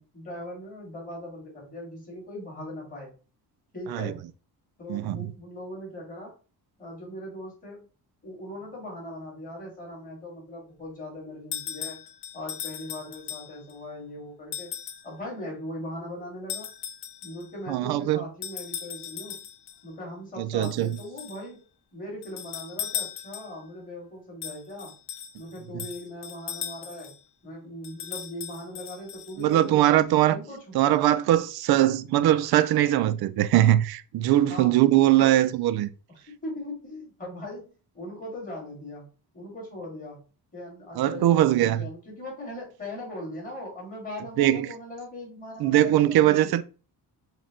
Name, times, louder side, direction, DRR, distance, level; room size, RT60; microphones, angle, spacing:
voice 1, 0.0-3.1 3.7-4.2 4.8-6.3 6.8-7.9 8.2-12.0 12.3-14.7 15.0-16.7 17.2-19.4 19.8-21.6 21.9-24.9 25.4-27.1 27.4-29.9 30.3-30.8 34.5-34.8 35.2-35.4 36.1-37.6 37.9-39.1 39.3-40.2 40.5-46.5, left 1 dB, 20° left, 2.4 m, -39 dB
voice 2, 4.9-5.3 17.7-18.2 20.4-20.9 29.4-30.4 30.7-35.9 41.0-41.8 44.4-44.7 45.6-46.6, right 13 dB, 65° right, 0.5 m, -21 dB
sound 1, 11.5-13.8 14.5-15.1 16.5-17.5 18.4-19.8 20.6-21.5 22.2-23.7 24.4-27.2 27.8-29.6, left 9 dB, 75° left, 0.7 m, -38 dB
6.2 x 2.3 x 3.7 m
cardioid pair, 150°, 40 cm